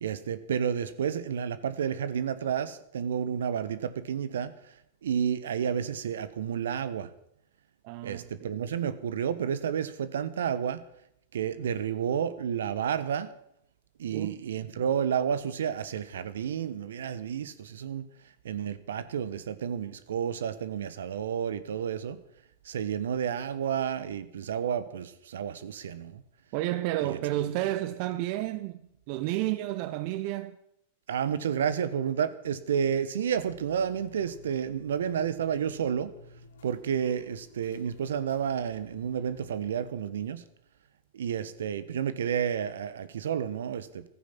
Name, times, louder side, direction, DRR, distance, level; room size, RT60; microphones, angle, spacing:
voice 1, 0.0-4.5 5.0-7.1 8.0-10.8 11.3-13.3 14.0-18.1 18.4-22.2 22.6-26.2 27.0-27.2 31.1-36.1 36.6-40.4 41.1-44.1, right 8 dB, 70° right, 1.2 m, -31 dB
voice 2, 7.8-8.5 14.1-14.4 26.5-28.8 29.1-30.6, right 15 dB, 50° right, 0.8 m, -31 dB
sound 1, 33.3-39.8, left 2 dB, 70° left, 3.0 m, -53 dB
15.0 x 14.0 x 6.0 m
figure-of-eight pair, 95°, 0 cm